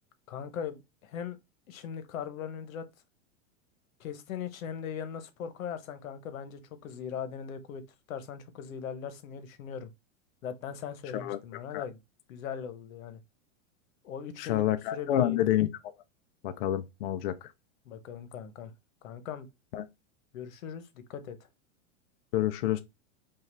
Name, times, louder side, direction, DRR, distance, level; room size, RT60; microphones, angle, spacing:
voice 1, 0.3-1.4 1.7-2.8 4.0-7.8 8.1-9.9 10.4-12.0 12.3-13.2 14.0-14.7 14.9-15.4 17.8-18.7 19.0-19.5 20.3-21.4, left 7 dB, 85° left, 1.1 m, -39 dB
voice 2, 14.4-15.7 16.4-17.3 19.7-19.8 22.3-22.8, left 12 dB, 50° left, 0.5 m, -28 dB
5.5 x 2.5 x 3.3 m
supercardioid pair, 170°, 40 cm